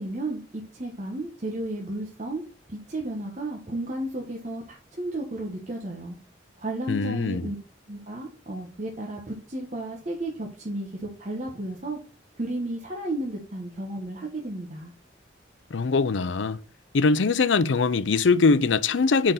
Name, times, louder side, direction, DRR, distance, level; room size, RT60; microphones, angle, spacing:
voice 1, 0.0-2.4 2.7-6.2 6.6-7.6 7.9-12.0 12.3-14.9, right 1 dB, 40° right, 1.3 m, -33 dB
voice 2, 6.9-7.5 15.7-16.6 16.9-19.3, left 4 dB, 80° left, 0.6 m, -22 dB
6.3 x 5.1 x 4.0 m
head